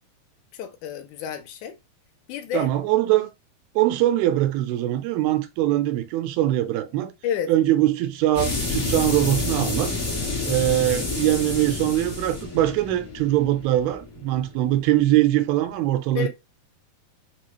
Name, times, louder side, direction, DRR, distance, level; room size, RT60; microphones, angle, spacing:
voice 1, 0.5-1.8 2.3-2.7 7.2-7.5 16.2-16.3, left 9 dB, 80° left, 1.8 m, -29 dB
voice 2, 2.5-3.3 3.8-7.1 7.5-9.9 10.5-16.3, right 14 dB, 80° right, 2.5 m, -22 dB
sound 1, 8.3-14.8, left 3 dB, 45° left, 1.0 m, -29 dB
6.1 x 2.4 x 3.0 m
omnidirectional pair, 4.6 m